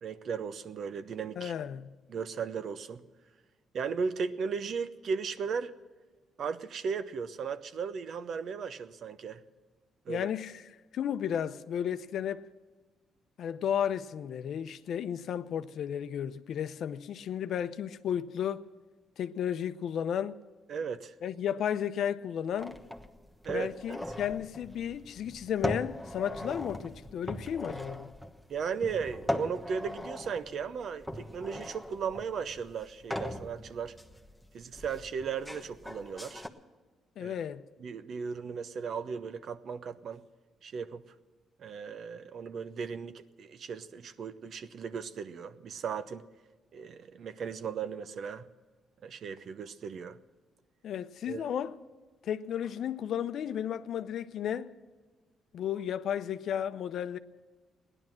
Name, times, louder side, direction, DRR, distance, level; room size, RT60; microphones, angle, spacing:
voice 1, 0.0-1.5 2.1-3.0 3.7-5.7 6.4-9.4 10.1-10.3 20.7-21.1 23.4-23.7 28.5-33.9 34.5-36.4 37.2-37.3 37.8-40.2 40.6-41.0 41.6-46.2 46.7-48.5 49.0-50.2 51.3-51.5, right 6 dB, 60° right, 0.8 m, -36 dB
voice 2, 1.4-1.9 10.1-12.5 13.4-18.7 19.2-20.4 21.2-22.8 23.5-28.1 37.2-37.6 50.8-51.8 52.2-54.7 55.5-57.2, left 9 dB, 70° left, 0.7 m, -33 dB
sound 1, 22.6-36.5, left 1 dB, ahead, 1.2 m, -40 dB
16.5 x 11.0 x 7.6 m
cardioid pair, 90°, 0 cm